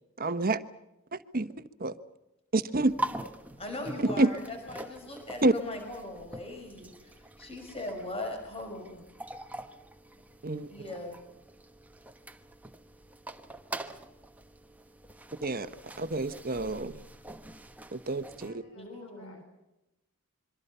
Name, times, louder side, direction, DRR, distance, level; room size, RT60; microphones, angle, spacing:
voice 1, 0.2-0.6 1.1-1.5 1.8-1.9 2.5-2.9 4.2-4.3 5.4-5.5 10.4-10.7 15.4-15.7 16.0-17.0 17.9-18.5, right 2 dB, 40° right, 11 dB, 1.2 m, -28 dB
sound 1, 2.8-18.5, right 1 dB, 5° right, 1.2 m, -43 dB
voice 2, 3.6-9.0 10.7-11.1 18.7-19.4, left 2 dB, 25° left, 4 dB, 5.3 m, -40 dB
voice 3, 18.3-19.4, left 1 dB, 70° left, 5 dB, 5.0 m, -53 dB
26.5 x 24.0 x 5.7 m, 0.93 s
head